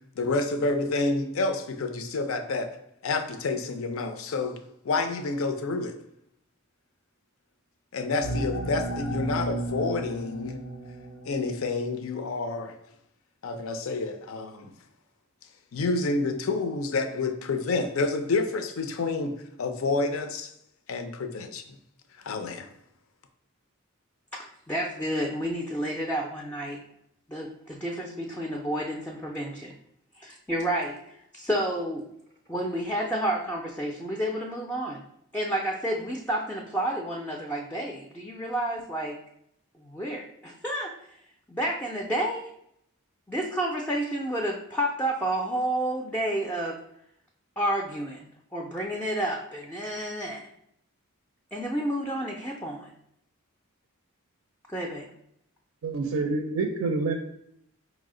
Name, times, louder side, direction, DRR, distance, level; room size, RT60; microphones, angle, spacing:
voice 1, 0.2-2.8 3.0-5.9 7.9-10.6 11.3-12.8 13.4-14.7 15.7-20.5 20.9-21.6 22.2-22.7, left 3 dB, 70° left, 0.5 m, -29 dB
sound 1, 8.2-11.7, right 1 dB, 90° left, 1.0 m, -33 dB
voice 2, 24.3-26.8 27.3-29.7 30.2-31.0 31.3-32.1 32.5-35.0 35.3-39.2 39.8-40.9 41.5-42.5 43.3-46.8 47.6-48.3 48.5-50.4 51.5-52.9 54.7-55.1, right 1 dB, 10° left, 0.3 m, -30 dB
voice 3, 55.8-57.1, right 3 dB, 80° right, 0.4 m, -27 dB
4.7 x 2.0 x 3.6 m
head